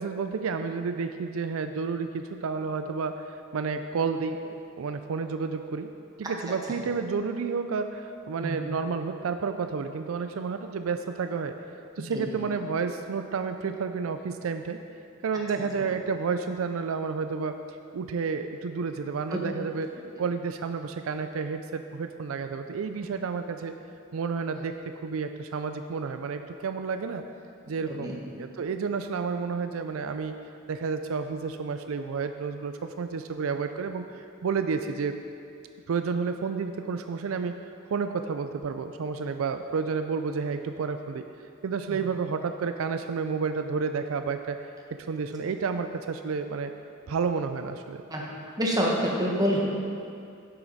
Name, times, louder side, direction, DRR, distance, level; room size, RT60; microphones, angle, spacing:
voice 1, 0.0-5.9 6.2-11.6 12.0-14.8 15.2-17.6 17.9-19.9 20.2-23.7 24.1-24.8 25.0-27.2 27.7-30.3 30.7-35.1 35.9-37.6 37.9-41.2 41.6-44.6 45.1-46.7 47.1-48.0, right 5 dB, 80° right, 8 dB, 0.4 m, -30 dB
voice 2, 48.6-49.6, equal, 20° right, -3 dB, 1.3 m, -27 dB
9.9 x 7.7 x 4.1 m, 2.5 s
head